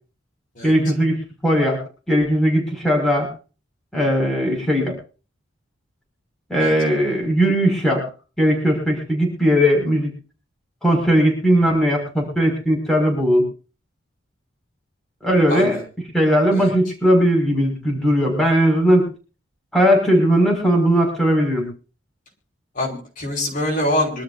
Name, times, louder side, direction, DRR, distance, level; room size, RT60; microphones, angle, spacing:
voice 1, 0.6-1.8 2.1-3.3 3.9-5.0 6.5-8.0 8.4-10.1 10.8-13.5 15.2-15.8 16.1-19.1 19.7-21.7, equal, ahead, -1 dB, 5.9 m, -18 dB
voice 2, 15.5-15.8 16.5-16.7 22.8-24.2, left 1 dB, 40° left, 1 dB, 5.2 m, -24 dB
25.0 x 12.5 x 2.8 m, 0.36 s
head